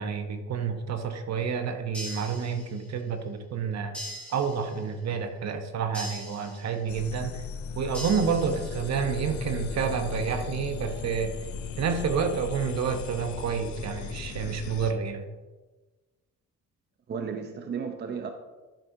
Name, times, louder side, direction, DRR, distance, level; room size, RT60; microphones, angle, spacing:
voice 1, 0.0-4.0 4.3-7.4 7.7-11.3 11.8-15.2, right 6 dB, 60° right, 7 dB, 0.9 m, -29 dB
sound 1, 1.9-3.0 3.9-5.0 5.9-7.0 7.9-9.0, equal, 5° left, 2.3 m, -41 dB
sound 2, 6.9-14.9, left 6 dB, 70° left, 0.7 m, -37 dB
voice 2, 17.1-18.3, right 6 dB, 35° right, 6 dB, 0.6 m, -34 dB
10.5 x 6.1 x 2.7 m, 1.2 s
cardioid pair, 90°, 30 cm